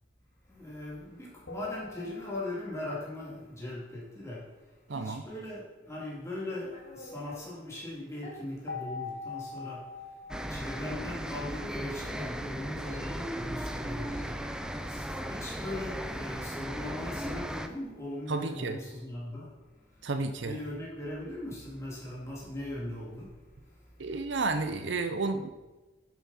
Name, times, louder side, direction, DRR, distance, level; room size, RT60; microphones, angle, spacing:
voice 1, 0.5-4.5 4.9-10.1 10.5-19.5 19.9-20.1 20.4-24.1, left 1 dB, 15° left, -6 dB, 2.8 m, -40 dB
sound 1, 1.5-3.0 8.7-12.0, left 5 dB, 80° left, 1.7 m, -43 dB
voice 2, 4.9-5.2 18.3-18.8 20.0-20.6 24.0-25.5, right 3 dB, 65° right, 8 dB, 0.6 m, -31 dB
Meow, 5.8-7.5 8.2-8.4 9.2-9.3 9.7-9.9 10.9-11.1 11.4-11.9 12.5-13.3 14.1-14.8 15.5-16.2, left 1 dB, 35° left, 1.8 m, -53 dB
sound 2, 10.3-17.7, equal, 5° right, 0.4 m, -36 dB
10.5 x 7.5 x 4.2 m, 1.2 s
head